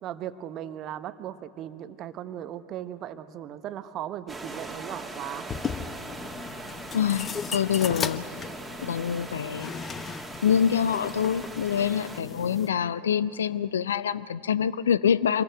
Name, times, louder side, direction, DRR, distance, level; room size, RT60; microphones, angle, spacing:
voice 1, 0.0-5.5, right 11 dB, 40° right, 11 dB, 1.1 m, -37 dB
sound 1, 4.3-12.2, right 3 dB, 10° right, 2.5 m, -41 dB
sound 2, 5.5-12.7, left 6 dB, 25° left, 1.0 m, -37 dB
voice 2, 6.9-8.2 8.8-9.8 10.4-15.4, left 8 dB, 70° left, 17 dB, 0.6 m, -25 dB
26.5 x 21.5 x 9.1 m, 2.8 s
figure-of-eight pair, 80°, 0 cm